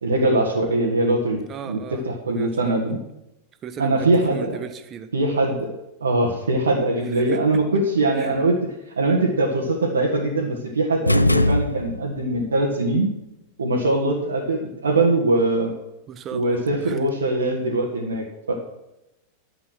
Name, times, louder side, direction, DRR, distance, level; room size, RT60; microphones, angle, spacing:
voice 1, 0.0-1.8 2.1-3.0 3.8-4.6 5.1-5.7 6.0-13.1 13.6-15.7 16.3-18.5, right 2 dB, 70° right, -2 dB, 1.7 m, -22 dB
voice 2, 1.5-2.9 3.6-5.1 7.2-7.6 8.2-8.3 16.1-17.0, right 7 dB, 30° right, 11 dB, 1.2 m, -36 dB
sound 1, 11.1-12.3, left 1 dB, 85° left, 0.4 m, -20 dB
11.5 x 8.1 x 6.3 m, 0.93 s
figure-of-eight pair, 90°, 0 cm